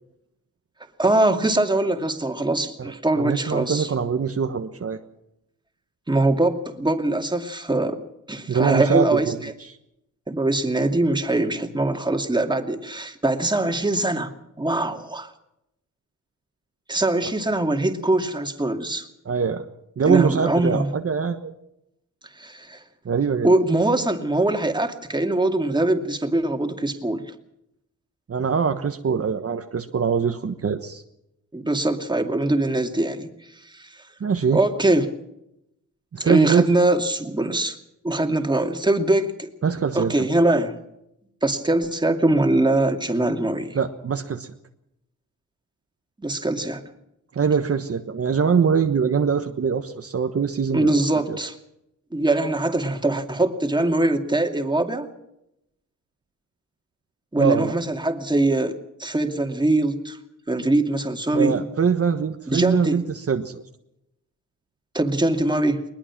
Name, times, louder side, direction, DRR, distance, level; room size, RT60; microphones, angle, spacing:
voice 1, 1.0-3.9 6.1-8.0 8.3-9.3 10.3-15.3 16.9-19.0 20.1-20.9 22.4-22.8 23.4-27.2 31.5-33.3 33.7-33.9 34.5-35.1 36.2-37.8 38.0-39.5 39.9-40.7 41.4-43.8 46.2-46.8 50.7-51.5 52.1-55.1 57.3-60.2 60.5-61.6 62.5-63.0 64.9-65.8, right 2 dB, 15° right, 5 dB, 2.5 m, -22 dB
voice 2, 2.8-5.0 8.5-9.8 17.2-17.3 19.2-19.6 20.0-21.5 23.0-23.5 28.3-31.0 34.2-34.6 36.1-36.6 39.6-40.1 43.7-44.5 47.3-51.0 51.3-51.4 57.4-57.7 61.3-63.6, right 6 dB, 45° right, 6 dB, 1.4 m, -23 dB
21.5 x 21.0 x 6.0 m, 0.83 s
cardioid pair, 95°, 32 cm